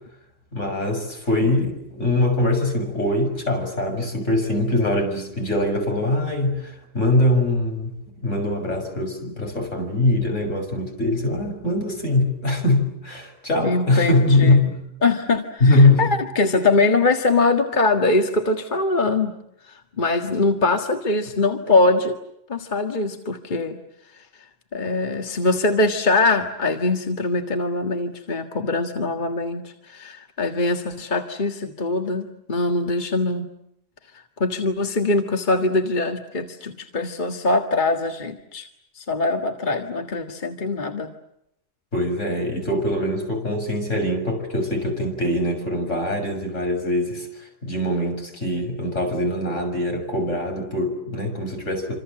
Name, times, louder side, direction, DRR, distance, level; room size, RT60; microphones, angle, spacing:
voice 1, 0.5-7.9 8.2-14.7 15.6-16.1 41.9-52.0, left 1 dB, 70° left, 3 dB, 7.3 m, -22 dB
voice 2, 13.6-14.7 15.0-19.3 19.6-22.2 22.5-23.8 24.1-24.3 24.7-33.5 34.1-38.7 39.0-41.1, left 3 dB, 40° left, 5 dB, 1.9 m, -22 dB
27.5 x 27.0 x 7.7 m, 0.79 s
omnidirectional pair, 1.3 m